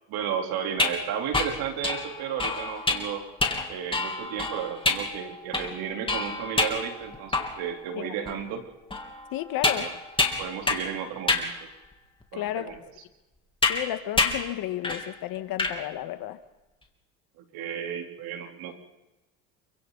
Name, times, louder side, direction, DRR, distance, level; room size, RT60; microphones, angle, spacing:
voice 1, 0.1-3.2 3.7-8.6 9.7-9.9 10.4-11.5 12.3-12.8 17.4-18.7, right 8 dB, 65° right, 3 dB, 3.8 m, -33 dB
sound 1, 0.7-7.8 8.3-8.4 8.9-11.0 11.3-11.5 12.2-12.3 13.6-13.9 14.2-14.5 14.8-15.1 15.4-15.8, left 3 dB, 15° left, 3.1 m, -27 dB
voice 2, 9.3-9.9 12.3-12.7 13.7-16.4, left 14 dB, 65° left, 10 dB, 1.8 m, -32 dB
29.0 x 25.0 x 4.1 m, 1.0 s
supercardioid pair, 90°, 38 cm